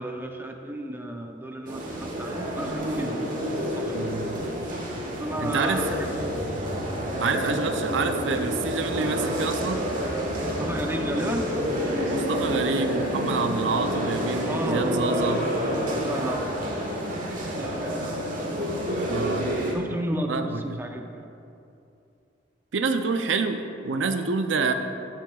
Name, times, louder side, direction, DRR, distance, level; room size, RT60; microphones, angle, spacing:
voice 1, 0.0-4.5 5.0-6.4 10.3-11.4 14.4-16.5 17.4-17.8 19.7-21.3, right 1 dB, 10° right, 3 dB, 0.5 m, -34 dB
sound 1, 1.7-19.7, equal, 45° right, 1.4 m, -28 dB
voice 2, 3.9-4.4 5.4-5.9 7.2-9.8 12.1-15.4 19.1-19.5 20.3-20.8 22.7-24.7, right 4 dB, 75° right, 7 dB, 0.5 m, -27 dB
14.0 x 7.5 x 2.3 m, 2.6 s
head